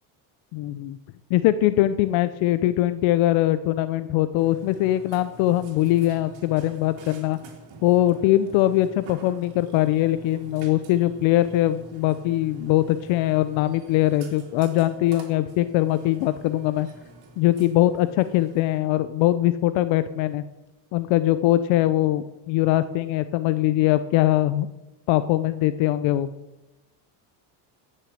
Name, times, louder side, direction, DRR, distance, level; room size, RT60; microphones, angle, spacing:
voice 1, 0.5-1.0 1.3-7.4 7.8-16.9 17.4-20.4 20.9-24.7 25.1-26.3, left 14 dB, 70° left, 13 dB, 0.7 m, -22 dB
Burping eructation, 4.4-18.8, right 2 dB, 65° right, 2.9 m, -47 dB
15.0 x 6.6 x 7.5 m, 1.0 s
supercardioid pair, 105°, 47 cm